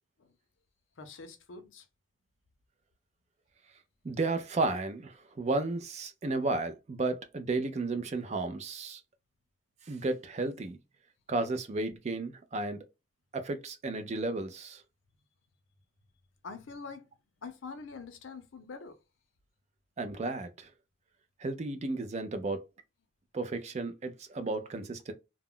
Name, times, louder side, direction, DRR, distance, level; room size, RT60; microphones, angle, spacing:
voice 1, 1.0-1.9 16.4-17.1 17.4-19.0, left 4 dB, 80° left, 0.6 m, -45 dB
voice 2, 4.0-9.0 9.9-10.8 11.3-12.8 13.3-14.8 20.0-20.7 21.4-22.7 23.3-25.1, right 3 dB, 35° right, 0.4 m, -33 dB
2.2 x 2.0 x 3.6 m
head